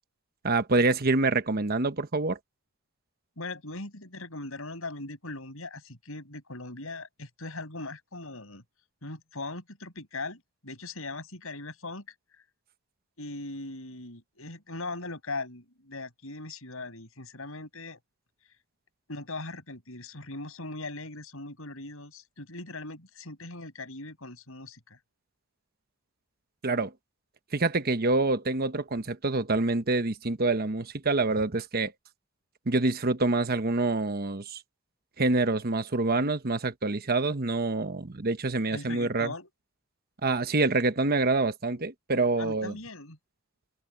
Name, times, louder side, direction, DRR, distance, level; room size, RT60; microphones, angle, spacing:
voice 1, 0.4-2.4 26.6-26.9 27.5-31.9 32.7-34.6 35.2-39.3 40.2-42.7, right 3 dB, 45° right, 1.1 m, -26 dB
voice 2, 3.4-8.6 9.0-12.0 13.2-18.0 19.1-25.0 38.7-39.5 41.7-41.8 42.4-43.2, left 2 dB, 75° left, 6.4 m, -40 dB
head